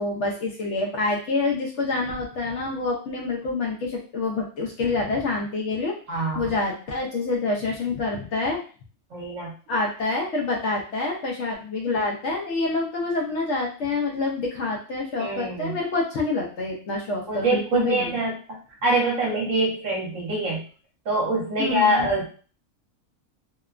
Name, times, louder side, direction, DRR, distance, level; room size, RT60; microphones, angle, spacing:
voice 1, 0.0-5.9 6.4-8.6 9.7-18.2 21.6-22.1, left 3 dB, 65° left, -1 dB, 0.8 m, -27 dB
voice 2, 6.1-6.5 9.1-9.5 15.2-15.8 17.3-20.6 21.0-22.3, right 2 dB, 60° right, -1 dB, 1.1 m, -25 dB
2.8 x 2.1 x 2.3 m, 0.38 s
omnidirectional pair, 1.5 m